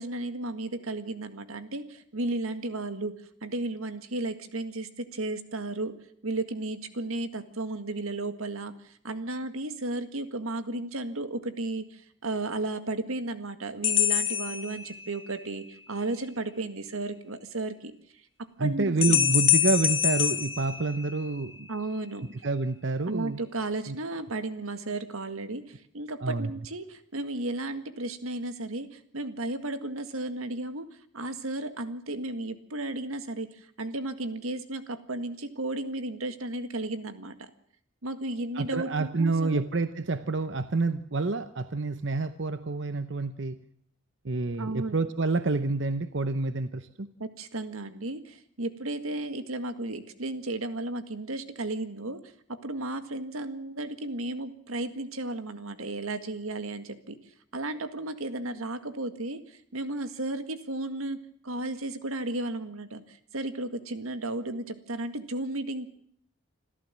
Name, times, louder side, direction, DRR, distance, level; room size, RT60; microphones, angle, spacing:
voice 1, 0.0-3.1 3.4-5.9 6.2-17.9 18.6-19.3 21.7-22.3 23.1-30.9 31.1-37.5 38.0-39.6 44.6-45.0 47.2-52.2 52.5-57.2 57.5-61.2 61.4-65.9, right 2 dB, 85° right, 10 dB, 1.9 m, -34 dB
sound 1, 13.8-15.4 19.0-21.5, left 10 dB, 70° left, 1.8 m, -26 dB
voice 2, 18.6-21.7 22.4-23.4 23.9-24.0 26.2-26.5 38.5-43.6 44.2-47.1, right 3 dB, 55° right, 12 dB, 0.8 m, -28 dB
26.5 x 14.0 x 7.5 m, 0.66 s
head